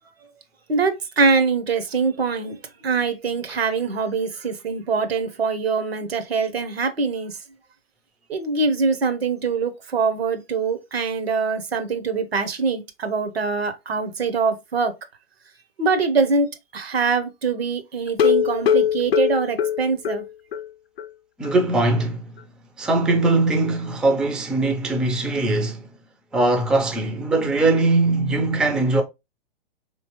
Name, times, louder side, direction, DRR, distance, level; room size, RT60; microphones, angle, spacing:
voice 1, 0.7-2.6 2.8-7.4 8.3-14.9 15.8-20.2, right 4 dB, 85° right, 1.0 m, -23 dB
sound 1, 18.1-20.7 21.0-21.1 21.4-21.5 21.9-22.0, left 9 dB, 85° left, 0.5 m, -21 dB
voice 2, 21.4-22.3 22.8-25.9 26.3-29.0, right 2 dB, 5° right, 0.3 m, -21 dB
4.2 x 3.1 x 3.0 m
hypercardioid pair, 115°, 30 cm